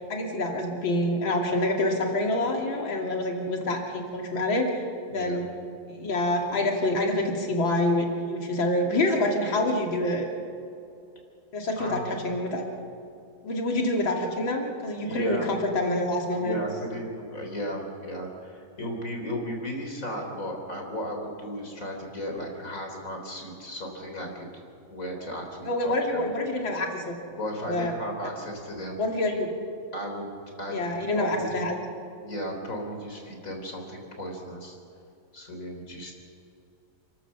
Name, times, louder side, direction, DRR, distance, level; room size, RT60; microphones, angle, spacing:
voice 1, 0.1-4.7 5.1-5.5 5.9-10.3 11.5-12.6 13.4-16.6 25.6-27.2 27.7-27.9 29.0-29.5 30.7-31.8, left 1 dB, 85° left, 1 dB, 3.4 m, -26 dB
voice 2, 5.1-5.4 11.8-12.3 15.0-15.5 16.3-24.5 24.9-26.3 27.3-29.0 29.9-30.3 30.6-30.8 31.2-31.5 32.2-34.8 35.3-36.1, equal, 40° left, 2 dB, 4.0 m, -35 dB
30.0 x 13.0 x 7.2 m, 2.6 s
omnidirectional pair, 2.1 m